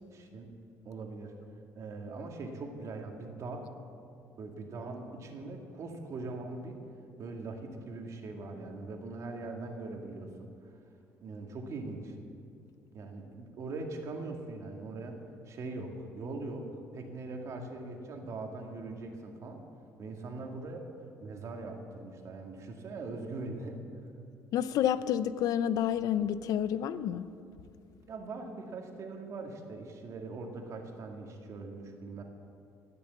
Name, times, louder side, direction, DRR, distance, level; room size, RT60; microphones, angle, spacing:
voice 1, 0.1-0.5 0.9-1.3 1.8-3.7 4.4-6.8 7.2-10.5 11.2-12.2 12.9-15.2 15.5-16.7 16.9-19.6 20.0-20.8 21.2-23.8 28.1-32.2, right 3 dB, 50° right, 3 dB, 2.1 m, -41 dB
voice 2, 24.5-27.2, left 10 dB, 70° left, 14 dB, 0.6 m, -29 dB
18.0 x 6.9 x 8.2 m, 2.5 s
cardioid pair, 105°, 6 cm